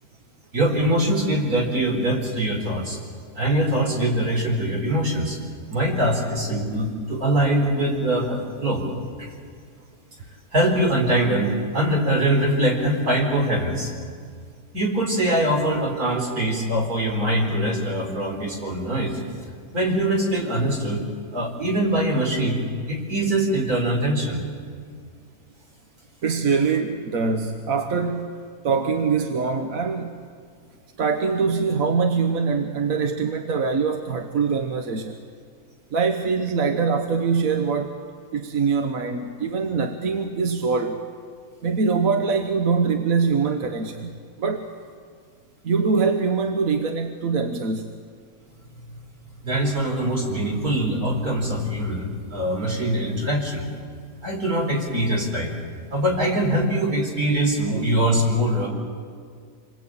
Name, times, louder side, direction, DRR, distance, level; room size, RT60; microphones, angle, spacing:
voice 1, 0.5-3.0 3.3-5.4 5.7-8.8 9.2-9.3 10.5-13.9 14.7-19.2 19.7-21.0 21.3-24.4 49.4-53.7 54.2-55.5 55.9-58.7, right 1 dB, 80° right, 0 dB, 4.9 m, -23 dB
voice 2, 26.2-30.2 31.0-35.2 35.9-38.0 38.3-41.0 41.6-44.7 45.6-47.9, right 5 dB, 65° right, 5 dB, 1.5 m, -23 dB
27.0 x 21.0 x 8.7 m, 2.1 s
omnidirectional pair, 1.6 m